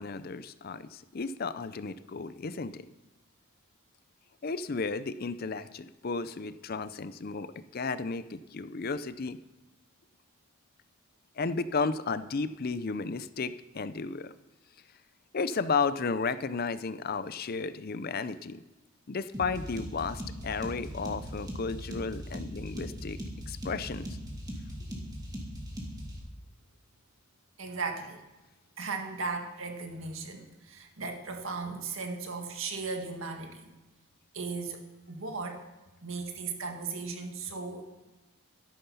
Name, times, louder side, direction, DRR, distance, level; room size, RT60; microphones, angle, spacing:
voice 1, 0.0-2.9 4.4-9.4 11.4-14.3 15.3-18.6 19.1-23.2 23.5-24.1, left 4 dB, 45° left, 14 dB, 0.5 m, -33 dB
sound 1, 19.3-26.2, equal, 20° right, 2.3 m, -39 dB
voice 2, 27.6-28.2 28.8-33.7 34.3-35.6 36.0-38.1, right 4 dB, 65° right, 4 dB, 1.9 m, -37 dB
13.0 x 11.0 x 5.6 m, 1.1 s
head